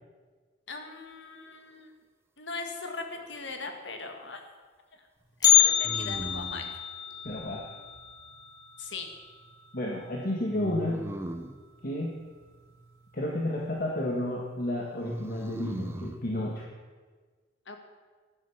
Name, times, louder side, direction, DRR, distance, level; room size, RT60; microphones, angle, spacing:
voice 1, 0.7-1.9 2.4-4.4 5.4-6.7 8.8-9.1 17.7-17.8, left 3 dB, 80° left, 5 dB, 1.9 m, -39 dB
sound 1, 3.1-3.8 5.8-6.8 10.6-11.6 14.9-16.2, right 1 dB, 15° right, 0.8 m, -38 dB
Bell, 5.4-9.5 9.8-9.9 10.4-10.5 11.3-11.4 12.1-12.4 12.8-12.9, left 12 dB, 20° left, 1.8 m, -27 dB
voice 2, 7.2-7.7 9.7-11.0 11.8-12.1 13.1-16.7, left 1 dB, 50° left, -1 dB, 1.6 m, -31 dB
12.5 x 10.5 x 7.0 m, 1.4 s
head